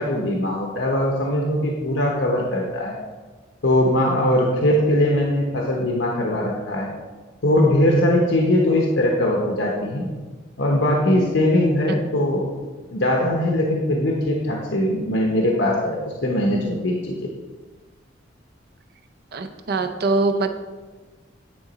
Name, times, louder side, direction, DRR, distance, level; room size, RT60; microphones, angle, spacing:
voice 1, 0.0-3.0 3.6-6.9 7.4-10.1 10.6-12.5 12.9-17.2, left 1 dB, 75° left, -1 dB, 0.9 m, -21 dB
voice 2, 19.3-20.5, right 3 dB, 60° right, 6 dB, 0.6 m, -23 dB
9.5 x 4.0 x 4.0 m, 1.3 s
head